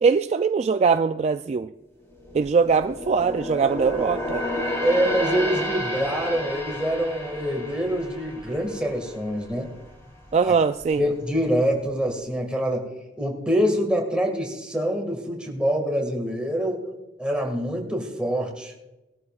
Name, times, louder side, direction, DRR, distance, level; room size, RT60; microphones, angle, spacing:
voice 1, 0.0-1.7 2.3-4.4 10.3-11.0, right 5 dB, 35° right, 9 dB, 0.3 m, -21 dB
sound 1, 2.0-9.6 9.9-10.2 10.7-11.4 11.7-11.8, left 1 dB, 15° left, 3.6 m, -31 dB
voice 2, 4.8-9.7 10.4-10.5 11.0-12.9 13.2-16.9 17.2-18.7, equal, 5° right, 0 dB, 2.0 m, -25 dB
19.5 x 12.5 x 2.4 m, 1.0 s
head